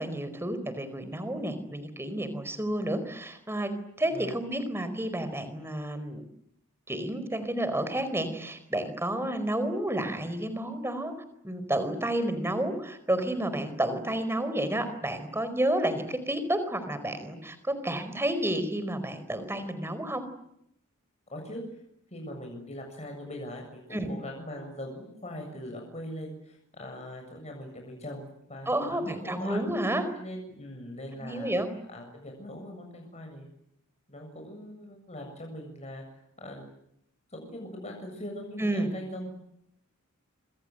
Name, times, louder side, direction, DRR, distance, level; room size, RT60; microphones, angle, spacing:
voice 1, 0.0-3.7 4.0-6.2 6.9-11.1 11.4-20.2 23.9-24.1 28.7-30.0 31.2-31.7 38.6-38.9, right 1 dB, 10° right, 12 dB, 4.6 m, -30 dB
voice 2, 21.3-21.6 22.1-29.7 30.2-31.5 31.9-33.5 34.1-36.7 37.3-39.3, left 1 dB, 30° left, 2 dB, 7.5 m, -41 dB
27.0 x 26.5 x 7.9 m, 0.75 s
head